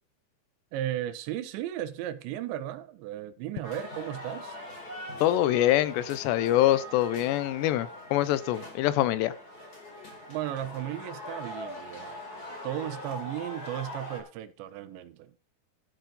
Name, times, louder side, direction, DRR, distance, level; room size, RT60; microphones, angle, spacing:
voice 1, 0.7-4.6 10.3-12.2 12.6-15.3, right 12 dB, 85° right, 3.4 m, -35 dB
sound 1, 3.6-14.2, left 1 dB, 20° left, 4.9 m, -42 dB
voice 2, 5.2-9.3, left 13 dB, 80° left, 2.9 m, -25 dB
13.5 x 9.3 x 5.3 m
omnidirectional pair, 5.0 m